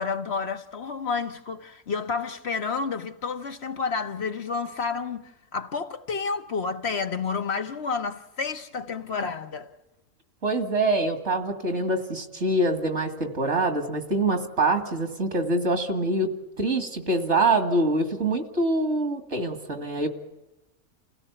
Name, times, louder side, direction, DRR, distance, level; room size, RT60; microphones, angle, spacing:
voice 1, 0.0-9.7, left 5 dB, 60° left, 1.4 m, -30 dB
voice 2, 10.4-16.3 16.6-20.1, right 2 dB, 65° right, 2.6 m, -25 dB
29.0 x 16.5 x 7.1 m
omnidirectional pair, 1.3 m